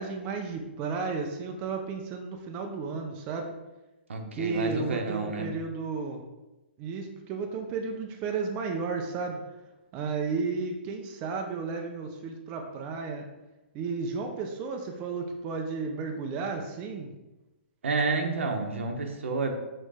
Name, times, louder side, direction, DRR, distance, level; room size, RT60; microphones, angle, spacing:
voice 1, 0.0-3.5 4.3-6.2 6.8-9.4 9.9-13.2 13.7-17.1, right 4 dB, 20° right, 2 dB, 0.6 m, -33 dB
voice 2, 4.1-5.5 17.8-19.5, right 3 dB, 85° right, 3 dB, 1.2 m, -30 dB
6.4 x 3.3 x 4.9 m, 1.0 s
hypercardioid pair, 165°, 6 cm